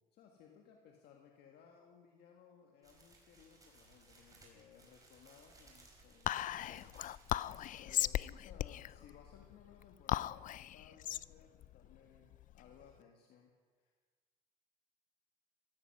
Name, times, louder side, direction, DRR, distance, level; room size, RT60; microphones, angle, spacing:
voice 1, 0.0-7.0 7.8-10.5 10.7-13.5 13.8-13.9, left 7 dB, 75° left, 2 dB, 1.7 m, -61 dB
sound 1, 2.8-8.0, right 2 dB, 20° right, 4.6 m, -63 dB
Whispering, 6.3-12.9, left 12 dB, 50° left, 0.4 m, -38 dB
16.0 x 15.0 x 6.0 m, 1.5 s
cardioid pair, 110°, 17 cm